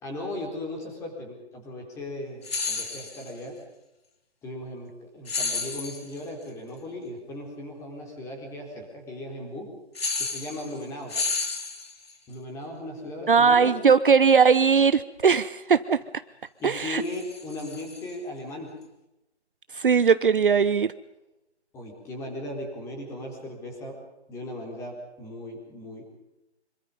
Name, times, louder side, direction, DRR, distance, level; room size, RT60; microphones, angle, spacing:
voice 1, 0.0-3.6 4.4-9.7 10.2-11.2 12.3-13.8 16.6-18.8 21.7-24.0 24.3-26.1, left 1 dB, 10° left, 1 dB, 4.1 m, -37 dB
sound 1, 2.4-3.3 5.3-6.2 9.9-10.8 11.1-12.1 16.7-18.1, left 4 dB, 60° left, 4.4 m, -31 dB
voice 2, 13.3-16.0 16.6-17.0 19.7-20.9, right 6 dB, 50° right, 14 dB, 0.9 m, -19 dB
26.0 x 24.5 x 5.4 m, 0.94 s
figure-of-eight pair, 160°, 34 cm